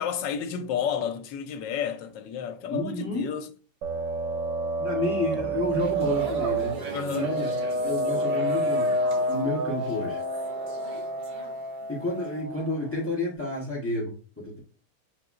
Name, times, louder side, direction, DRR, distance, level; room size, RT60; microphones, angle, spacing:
voice 1, 0.0-3.5 6.9-7.3, left 8 dB, 85° left, 1.3 m, -31 dB
voice 2, 2.7-3.3 4.8-6.8 7.1-7.5 7.8-8.9 9.3-10.2 11.9-14.6, left 1 dB, 10° left, 0.6 m, -30 dB
sound 1, 3.8-13.1, right 1 dB, 85° right, 1.3 m, -29 dB
sound 2, 5.6-11.9 12.2-12.4, right 1 dB, 50° right, 0.6 m, -41 dB
6.4 x 2.8 x 2.4 m
omnidirectional pair, 1.9 m